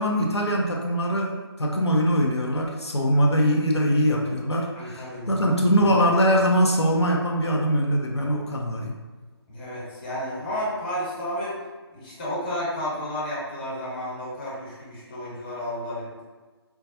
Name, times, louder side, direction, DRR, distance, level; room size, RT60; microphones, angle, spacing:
voice 1, 0.0-9.0, equal, 85° left, 0 dB, 0.6 m, -22 dB
voice 2, 4.7-5.9 9.5-11.5 11.9-16.2, equal, 20° left, -7 dB, 1.0 m, -32 dB
4.5 x 2.3 x 2.7 m, 1.3 s
figure-of-eight pair, 155°, 14 cm